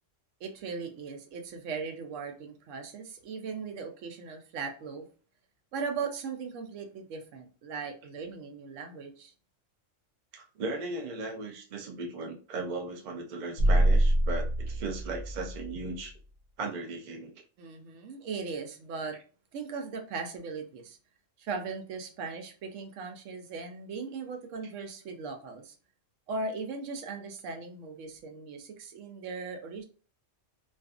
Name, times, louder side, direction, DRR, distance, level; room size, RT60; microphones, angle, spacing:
voice 1, 0.4-5.0 5.7-9.3 17.6-19.2 19.5-21.0 21.4-25.7 26.3-29.8, right 4 dB, 75° right, 5 dB, 0.9 m, -38 dB
voice 2, 10.3-16.1 16.6-17.4, right 3 dB, 55° right, 2 dB, 0.5 m, -37 dB
sound 1, 13.6-16.0, right 1 dB, 65° left, 0.4 m, -25 dB
2.4 x 2.4 x 2.3 m, 0.37 s
omnidirectional pair, 1.3 m